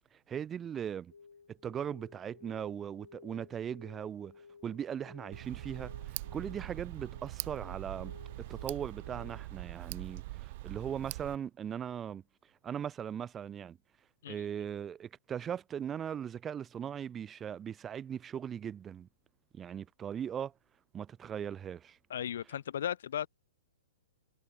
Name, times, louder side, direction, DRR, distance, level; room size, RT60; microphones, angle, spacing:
voice 1, 0.1-1.1 1.5-4.3 4.6-8.1 8.5-12.2 12.6-13.8 14.3-19.1 19.5-20.5 20.9-22.0, right 8 dB, 20° right, 2.8 m, -39 dB
sound 1, 1.1-9.5, left 5 dB, 85° left, 4.0 m, -56 dB
Tick, 5.3-11.4, right 19 dB, 50° right, 1.1 m, -42 dB
voice 2, 22.1-23.3, left 10 dB, 65° left, 2.2 m, -36 dB
hypercardioid pair, 120°, 0 cm